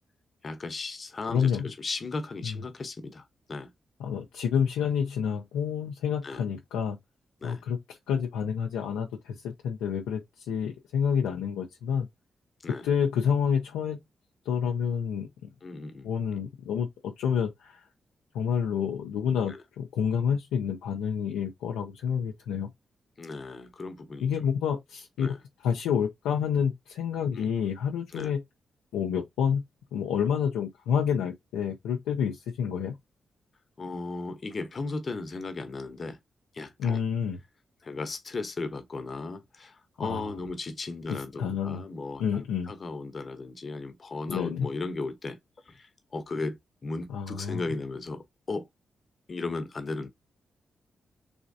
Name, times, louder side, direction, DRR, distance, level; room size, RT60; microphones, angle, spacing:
voice 1, 0.4-3.2 3.5-3.7 6.2-6.4 7.4-7.6 12.6-12.8 15.6-16.1 19.5-19.6 23.2-24.3 25.2-25.4 27.3-27.5 28.1-28.3 33.8-36.2 36.5-37.0 37.8-45.4 45.7-48.7 49.3-50.1, left 3 dB, 50° left, 0.8 m, -36 dB
voice 2, 1.3-1.7 2.4-2.6 4.0-7.0 7.4-12.1 12.8-14.0 14.5-15.3 16.0-17.8 18.3-22.7 24.2-25.3 25.6-28.4 28.9-29.6 29.9-33.0 36.8-37.4 40.0-40.4 41.1-41.8 42.2-42.7 44.3-44.7 47.1-47.6, left 7 dB, 90° left, 0.5 m, -29 dB
3.4 x 3.0 x 2.7 m
supercardioid pair, 45°, 0 cm